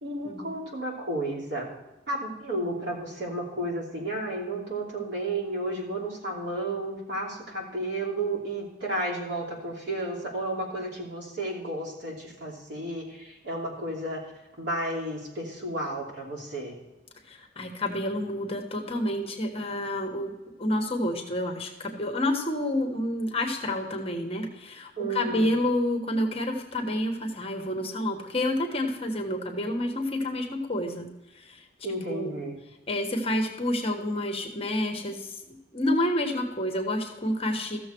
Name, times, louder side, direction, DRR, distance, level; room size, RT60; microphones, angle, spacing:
voice 1, 0.0-1.7 2.1-14.2 14.6-16.8 25.0-25.5 31.8-32.6, right 1 dB, 65° right, -2 dB, 3.0 m, -32 dB
voice 2, 17.3-20.3 20.6-31.1 31.4-31.6 32.1-32.4 32.9-35.3 35.7-37.8, left 1 dB, 30° left, 3 dB, 1.4 m, -29 dB
14.5 x 7.0 x 4.5 m, 1.0 s
head